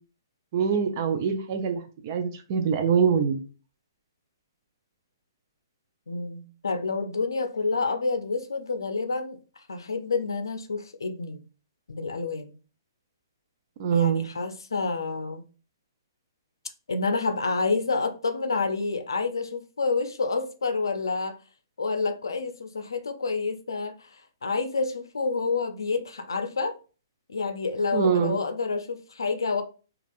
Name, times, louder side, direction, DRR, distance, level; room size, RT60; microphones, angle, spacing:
voice 1, 0.5-3.4 13.8-14.3 27.9-28.4, right 7 dB, 45° right, 0.5 m, -24 dB
voice 2, 6.1-9.4 9.7-11.4 11.9-12.5 13.9-15.4 16.9-21.4 21.8-23.9 24.4-26.8 27.3-29.6, left 4 dB, 85° left, 0.5 m, -28 dB
3.3 x 2.4 x 2.5 m
hypercardioid pair, 135°, 2 cm